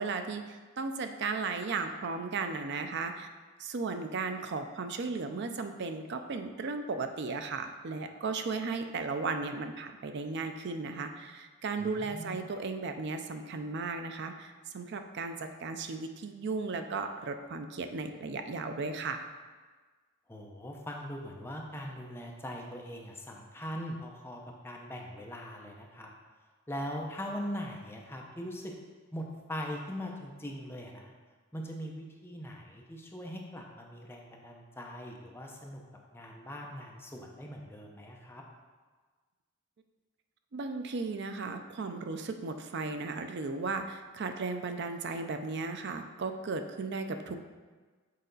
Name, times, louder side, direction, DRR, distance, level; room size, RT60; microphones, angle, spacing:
voice 1, 0.0-3.3 3.6-19.2 40.5-47.4, right 4 dB, 55° right, 7 dB, 0.5 m, -35 dB
voice 2, 11.8-12.4 20.3-26.1 26.7-28.7 29.1-31.1 31.5-35.8 36.1-38.4, equal, 10° left, 0 dB, 0.6 m, -41 dB
6.6 x 4.0 x 3.9 m, 1.4 s
head